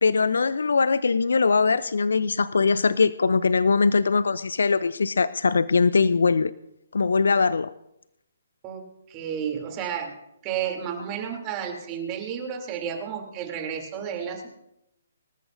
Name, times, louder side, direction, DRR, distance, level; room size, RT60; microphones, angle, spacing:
voice 1, 0.0-6.5 6.9-7.7, left 4 dB, 70° left, 17 dB, 0.5 m, -21 dB
voice 2, 8.6-10.2 10.4-14.5, right 8 dB, 25° right, 2 dB, 3.0 m, -32 dB
25.0 x 13.5 x 2.7 m, 0.84 s
figure-of-eight pair, 135°, 0 cm